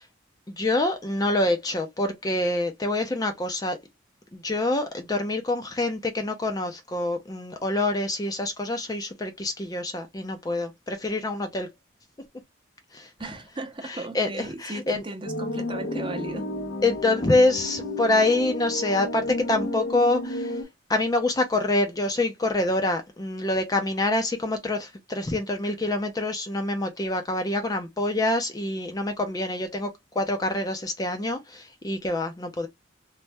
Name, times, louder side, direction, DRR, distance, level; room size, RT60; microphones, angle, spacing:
voice 1, 0.5-3.8 4.3-11.7 12.9-13.1 13.8-15.0 16.8-20.6 20.9-32.7, left 2 dB, 20° left, 0.4 m, -26 dB
voice 2, 13.2-16.4, right 2 dB, 25° right, 0.6 m, -36 dB
sound 1, 15.2-20.6, left 1 dB, 75° left, 1.0 m, -32 dB
3.2 x 2.1 x 2.6 m
head